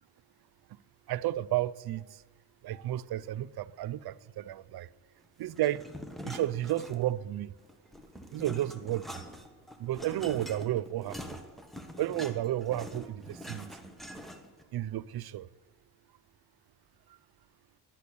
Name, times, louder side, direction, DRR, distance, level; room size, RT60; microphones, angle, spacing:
voice 1, 1.1-2.2 2.6-4.9 5.4-5.8 6.2-7.5 8.3-9.2 9.8-11.4 12.0-13.7 14.7-15.5, right 13 dB, 60° right, 0.5 m, -32 dB
sound 1, 5.6-7.3 7.6-14.6, equal, ahead, 1.3 m, -45 dB
11.0 x 8.3 x 8.4 m
cardioid pair, 90°, 41 cm